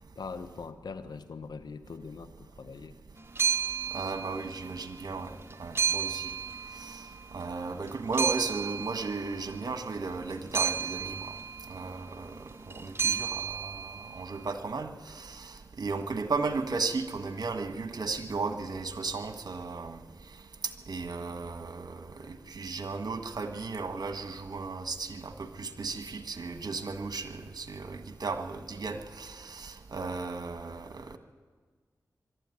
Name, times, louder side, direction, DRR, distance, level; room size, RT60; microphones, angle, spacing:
voice 1, 0.2-3.0 7.8-7.9 30.0-30.2, left 4 dB, 80° left, 11 dB, 1.1 m, -42 dB
sound 1, 3.2-4.9 5.2-7.5 7.9-14.4, right 7 dB, 35° right, 1.3 m, -33 dB
voice 2, 3.9-6.3 6.8-7.0 7.3-11.3 11.7-20.0 20.9-31.2, right 4 dB, 70° right, 8 dB, 1.6 m, -35 dB
22.5 x 13.0 x 9.8 m, 1.5 s
cardioid pair, 40°, 7 cm